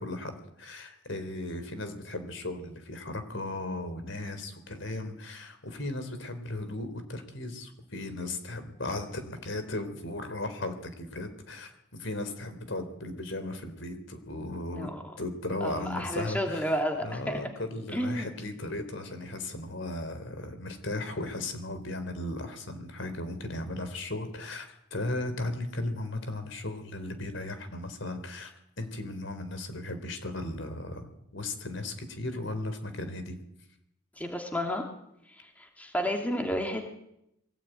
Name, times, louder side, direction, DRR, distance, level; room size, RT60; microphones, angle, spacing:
voice 1, 0.0-14.9 15.2-33.4, left 2 dB, 70° left, 9 dB, 3.8 m, -36 dB
voice 2, 15.6-17.4 17.9-18.3 34.2-34.8 35.4-36.8, equal, 5° left, 3 dB, 2.7 m, -31 dB
22.5 x 17.5 x 9.3 m, 0.81 s
head